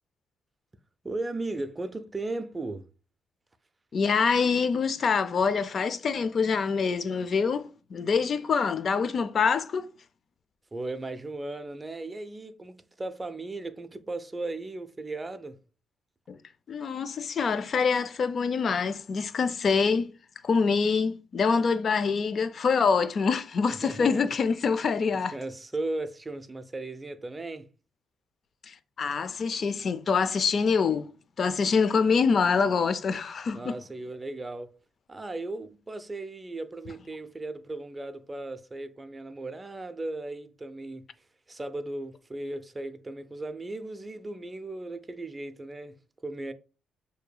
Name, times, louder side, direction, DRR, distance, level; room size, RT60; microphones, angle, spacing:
voice 1, 1.0-2.9 10.7-15.6 23.8-24.3 25.3-27.7 33.5-34.7 35.1-41.1 41.5-46.5, right 2 dB, 20° right, 0.5 m, -36 dB
voice 2, 3.9-9.9 16.3-16.4 16.7-20.1 20.4-25.4 28.6-31.1 31.4-33.8, left 5 dB, 50° left, 0.4 m, -25 dB
6.5 x 2.7 x 2.2 m
cardioid pair, 90°, 0 cm